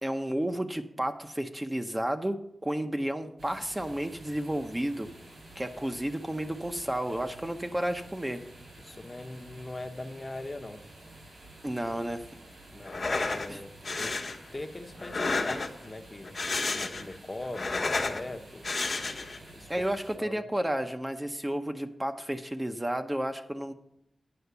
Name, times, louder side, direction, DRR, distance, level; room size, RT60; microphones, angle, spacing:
voice 1, 0.0-5.1 5.6-8.4 11.6-12.2 13.5-13.6 19.7-23.7, right 1 dB, 15° right, 6 dB, 0.7 m, -32 dB
sound 1, 3.4-20.2, right 1 dB, 85° right, 4.9 m, -50 dB
voice 2, 8.8-10.8 12.7-18.7 19.5-19.9 20.2-20.4, left 2 dB, 30° left, 5 dB, 0.9 m, -41 dB
sound 2, 12.8-13.5 13.8-14.4 15.0-15.9 16.2-17.1 17.4-18.2 18.6-19.4, left 3 dB, 65° left, 1.2 m, -31 dB
9.6 x 5.6 x 6.8 m, 0.78 s
wide cardioid pair, 70°, 0 cm